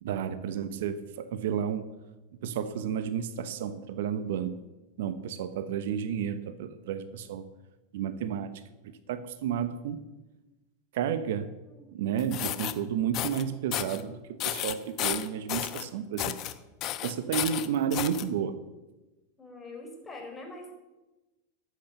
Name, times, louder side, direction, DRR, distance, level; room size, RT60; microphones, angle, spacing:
voice 1, 0.0-1.9 2.4-4.6 5.0-7.5 7.9-8.6 9.1-10.1 10.9-11.5 11.9-16.3 17.0-18.6, right 8 dB, 70° right, 13 dB, 0.9 m, -31 dB
voice 2, 11.6-12.0 19.4-20.7, left 2 dB, 15° left, 2 dB, 4.2 m, -44 dB
sound 1, 12.2-12.7 13.1-13.4 13.7-14.0 14.4-15.9 16.2-16.5 16.8-18.2, left 13 dB, 45° left, 1.0 m, -32 dB
13.0 x 8.1 x 6.9 m, 1.1 s
hypercardioid pair, 95°, 0 cm